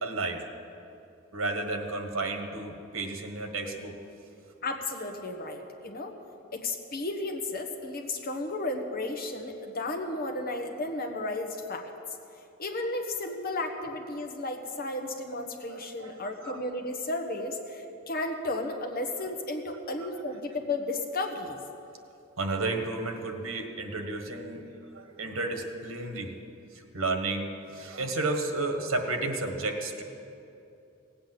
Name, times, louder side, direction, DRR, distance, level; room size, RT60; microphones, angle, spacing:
voice 1, 0.0-0.4 1.3-4.0 15.7-16.6 19.9-20.1 22.4-26.3 26.9-30.0, right 2 dB, 85° right, 5 dB, 1.5 m, -32 dB
voice 2, 4.6-6.1 6.5-11.8 12.6-21.6, left 2 dB, 45° left, 3 dB, 1.4 m, -33 dB
17.0 x 8.5 x 7.9 m, 2.7 s
head